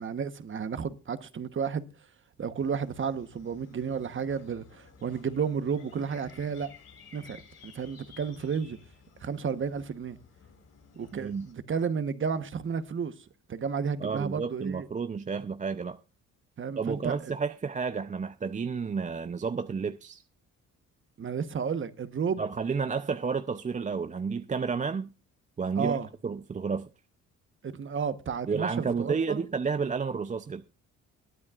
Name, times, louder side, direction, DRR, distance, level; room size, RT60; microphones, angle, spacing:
voice 1, 0.0-1.9 2.4-6.7 7.1-8.8 9.2-10.2 11.0-13.1 13.5-14.9 16.6-17.2 21.2-22.4 25.8-26.1 27.6-29.4, right 6 dB, 40° right, 1.1 m, -32 dB
sound 1, 2.5-11.5, left 6 dB, 55° left, 6.6 m, -55 dB
voice 2, 11.1-11.5 14.0-16.0 16.8-20.2 22.4-25.1 25.6-26.9 28.5-30.6, right 5 dB, 25° right, 0.6 m, -31 dB
21.5 x 9.4 x 2.4 m
cardioid pair, 90°, 30 cm